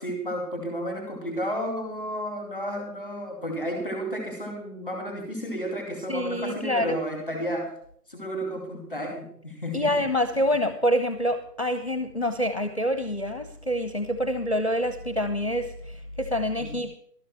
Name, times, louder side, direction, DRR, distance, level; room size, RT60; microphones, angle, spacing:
voice 1, 0.0-7.7 8.1-10.0 16.6-16.8, equal, ahead, 2 dB, 2.2 m, -32 dB
voice 2, 6.1-7.0 9.7-17.0, equal, 40° left, 10 dB, 0.8 m, -26 dB
12.0 x 9.2 x 6.0 m, 0.63 s
figure-of-eight pair, 170°, 49 cm